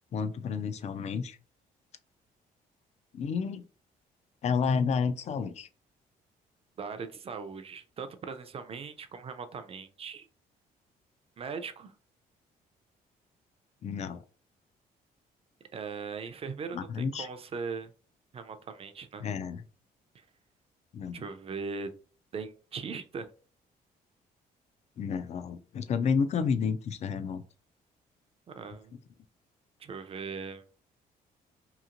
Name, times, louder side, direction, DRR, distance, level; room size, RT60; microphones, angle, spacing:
voice 1, 0.1-1.4 3.1-3.6 4.4-5.7 13.8-14.2 16.7-17.3 19.2-19.6 20.9-21.3 25.0-27.4, left 6 dB, 45° left, 11 dB, 0.4 m, -30 dB
voice 2, 6.8-10.3 11.4-11.9 15.7-17.9 18.3-19.3 21.1-21.9 22.3-23.3 28.5-28.9 29.8-30.6, right 5 dB, 35° right, 9 dB, 0.4 m, -39 dB
2.9 x 2.7 x 2.5 m, 0.39 s
cardioid pair, 95°, 16 cm